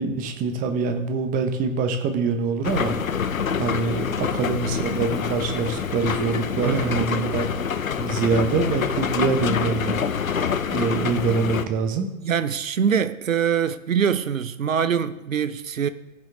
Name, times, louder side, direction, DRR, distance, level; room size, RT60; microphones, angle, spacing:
voice 1, 0.0-2.9 3.6-7.5 8.0-10.0 10.7-12.1, right 5 dB, 20° right, 1.1 m, -25 dB
sound 1, 2.6-11.6, left 7 dB, 80° left, 0.7 m, -26 dB
voice 2, 6.6-7.1 10.8-10.9 12.2-15.9, right 7 dB, 75° right, 0.8 m, -24 dB
15.0 x 5.9 x 3.8 m
figure-of-eight pair, 115°, 40 cm